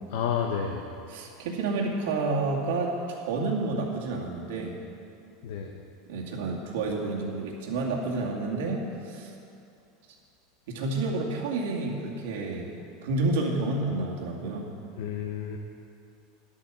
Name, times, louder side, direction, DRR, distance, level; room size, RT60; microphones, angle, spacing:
voice 1, 0.1-0.9 5.4-5.8 15.0-15.6, left 7 dB, 75° left, 2 dB, 0.9 m, -30 dB
voice 2, 1.1-4.8 6.1-9.3 10.7-12.8 13.0-14.7, right 3 dB, 80° right, -2 dB, 2.3 m, -30 dB
11.0 x 8.5 x 7.5 m, 2.5 s
supercardioid pair, 165°, 0 cm